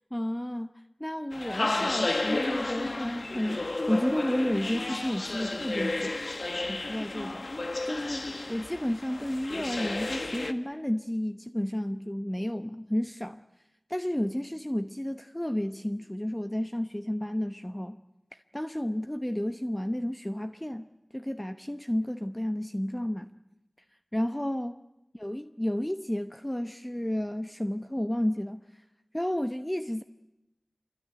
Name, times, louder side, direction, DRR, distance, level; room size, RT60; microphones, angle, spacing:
voice 1, 0.1-0.7 1.0-6.2 6.7-7.5 7.9-13.4 13.9-18.0 18.3-20.9 21.1-23.3 24.1-24.8 25.1-28.8 29.1-30.0, left 1 dB, 15° left, 0.9 m, -32 dB
sound 1, 1.3-10.5, left 2 dB, 65° left, 1.6 m, -32 dB
26.0 x 23.0 x 9.9 m
wide cardioid pair, 45°, 0 cm